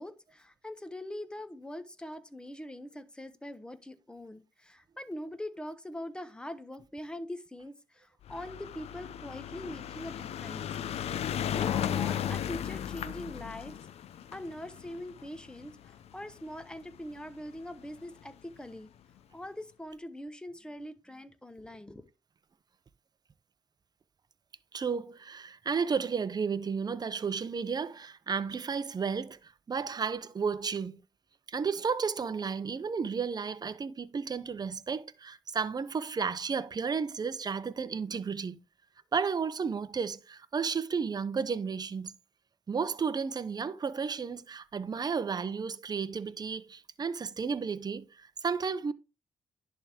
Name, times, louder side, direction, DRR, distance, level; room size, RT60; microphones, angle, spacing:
voice 1, 0.0-11.1 11.5-13.8 14.3-18.9 19.3-22.1, left 1 dB, 10° left, 1.0 m, -43 dB
sound 1, 8.2-16.7 17.6-17.7 17.9-18.0 18.2-18.3, left 10 dB, 75° left, 0.6 m, -35 dB
voice 2, 24.7-31.0 31.5-38.6 39.1-42.1 42.7-48.9, right 5 dB, 40° right, 0.7 m, -33 dB
10.5 x 3.6 x 4.4 m
cardioid pair, 75°, 11 cm